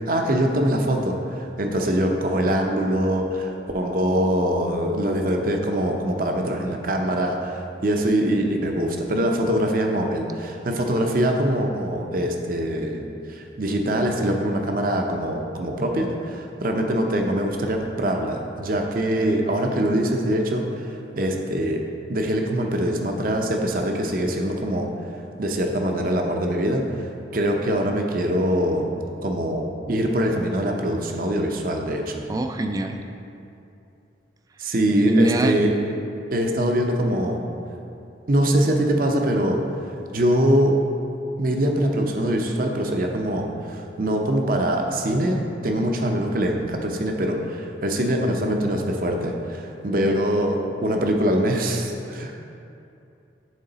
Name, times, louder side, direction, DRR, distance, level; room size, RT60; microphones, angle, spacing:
voice 1, 0.1-13.0 13.3-21.8 22.1-24.9 25.4-32.2 34.6-35.7 36.3-37.4 38.3-39.6 40.1-40.8 41.4-52.3, right 1 dB, 50° right, 2 dB, 0.6 m, -23 dB
voice 2, 32.3-33.0 35.1-35.7, right 1 dB, 20° right, 5 dB, 0.3 m, -23 dB
10.5 x 3.8 x 3.9 m, 2.7 s
head